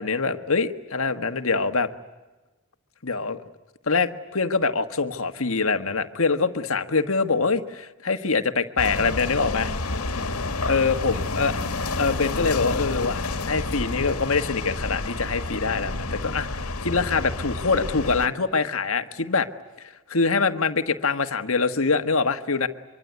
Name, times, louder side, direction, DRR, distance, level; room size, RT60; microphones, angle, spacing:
voice 1, 0.0-1.9 3.0-3.4 3.9-9.7 10.6-11.6 11.9-19.5 20.1-22.7, left 4 dB, 70° left, 8 dB, 1.5 m, -24 dB
sound 1, 8.8-18.3, left 2 dB, 90° left, 1.8 m, -29 dB
25.0 x 25.0 x 9.4 m, 1.2 s
head